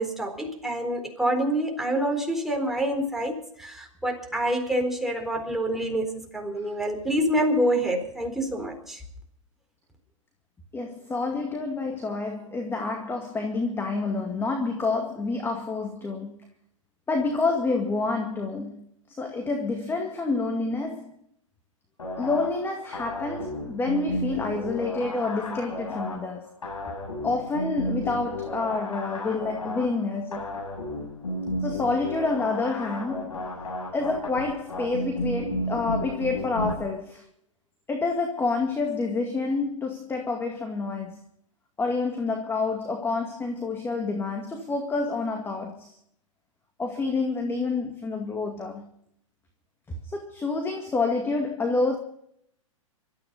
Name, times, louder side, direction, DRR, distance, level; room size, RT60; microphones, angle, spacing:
voice 1, 0.0-9.0, right 1 dB, ahead, 4.2 m, -27 dB
voice 2, 10.7-16.4 17.1-18.8 19.2-21.1 22.2-26.5 27.2-30.5 31.6-33.4 33.9-37.3 37.9-41.2 41.8-46.0 46.8-48.9 49.9-52.0, left 3 dB, 15° left, 2.2 m, -28 dB
sound 1, 22.0-36.7, left 1 dB, 90° left, 7.8 m, -33 dB
25.0 x 14.0 x 4.1 m
hypercardioid pair, 110°, 17 cm